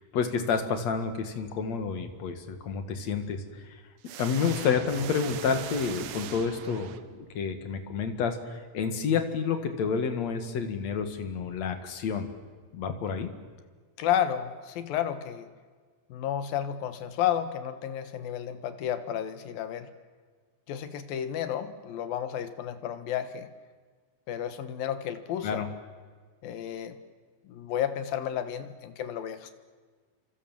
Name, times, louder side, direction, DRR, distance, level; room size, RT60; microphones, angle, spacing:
voice 1, 0.1-3.6 4.2-12.3 12.7-13.3 25.4-25.7, left 6 dB, 50° left, 7 dB, 2.7 m, -29 dB
sound 1, 4.0-7.4, right 10 dB, 70° right, 2.7 m, -40 dB
voice 2, 14.0-15.5 16.1-19.9 20.7-23.5 24.3-25.7 26.4-27.0 27.4-29.5, left 10 dB, 75° left, 10 dB, 3.0 m, -32 dB
29.0 x 25.0 x 7.4 m, 1.5 s
omnidirectional pair, 4.4 m